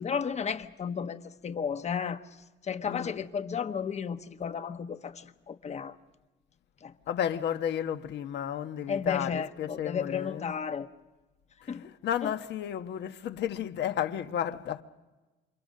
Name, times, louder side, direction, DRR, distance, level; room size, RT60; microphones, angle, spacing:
voice 1, 0.0-2.2 2.7-5.9 6.8-6.9 8.9-10.9 11.7-11.9 12.2-12.3, left 6 dB, 35° left, 1.1 m, -33 dB
voice 2, 2.8-3.2 7.1-10.5 11.6-14.8, left 9 dB, 65° left, 1.2 m, -33 dB
28.0 x 26.5 x 6.6 m
cardioid pair, 125°, 19 cm